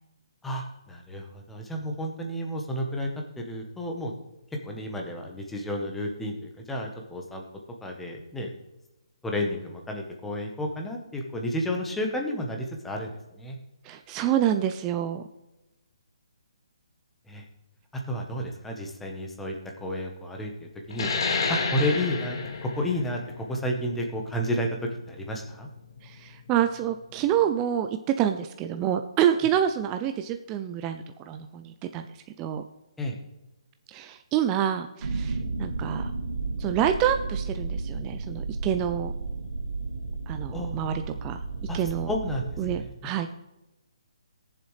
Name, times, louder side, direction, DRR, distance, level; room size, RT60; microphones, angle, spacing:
voice 1, 0.4-3.1 3.4-4.1 4.6-7.4 7.8-8.5 9.2-13.6 17.3-17.4 17.9-19.5 19.8-21.1 21.5-25.7 33.0-33.2 40.5-40.8 41.7-41.8 42.1-42.5 42.8-42.9, equal, 5° left, 1 dB, 1.0 m, -31 dB
voice 2, 13.8-15.2 26.0-32.1 32.4-32.6 33.9-36.1 36.6-39.1 40.3-41.4 41.7-42.1 42.6-43.5, right 10 dB, 15° right, 7 dB, 0.3 m, -27 dB
sound 1, 20.9-26.1, left 4 dB, 50° left, 1.9 m, -31 dB
sound 2, 35.0-42.8, right 3 dB, 80° right, 2.5 m, -33 dB
18.5 x 7.2 x 3.2 m, 0.98 s
hypercardioid pair, 170°, 3 cm